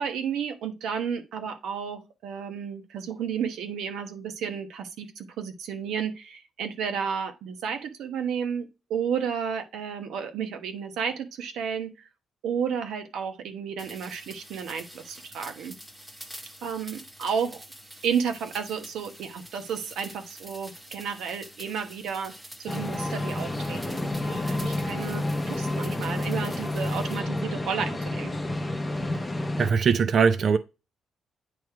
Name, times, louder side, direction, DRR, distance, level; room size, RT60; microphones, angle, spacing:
voice 1, 0.0-12.1 12.4-15.7 16.6-17.6 18.0-22.3 22.6-28.3, right 7 dB, 85° right, 1.1 m, -32 dB
sound 1, 13.8-27.2, right 1 dB, 10° right, 1.0 m, -47 dB
sound 2, 22.7-29.7, left 1 dB, 15° left, 0.7 m, -30 dB
voice 2, 29.5-30.6, right 6 dB, 45° right, 0.4 m, -22 dB
9.2 x 3.1 x 4.8 m
cardioid pair, 130°, 0 cm